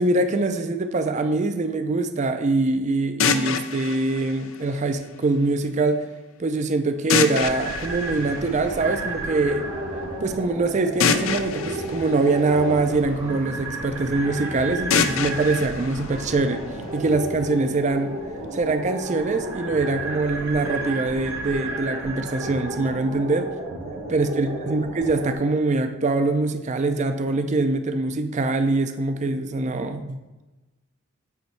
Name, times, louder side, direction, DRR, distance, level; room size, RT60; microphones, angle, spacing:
voice 1, 0.0-6.0 6.4-9.6 10.2-16.6 16.9-18.2 18.5-23.5 24.1-30.2, right 3 dB, 35° right, 7 dB, 0.4 m, -23 dB
sound 1, 3.2-5.2 7.1-9.1 11.0-13.2 14.9-16.9, left 6 dB, 70° left, 0.4 m, -27 dB
sound 2, 7.4-25.3, right 2 dB, 80° right, 1.3 m, -32 dB
8.0 x 3.1 x 4.5 m, 1.1 s
head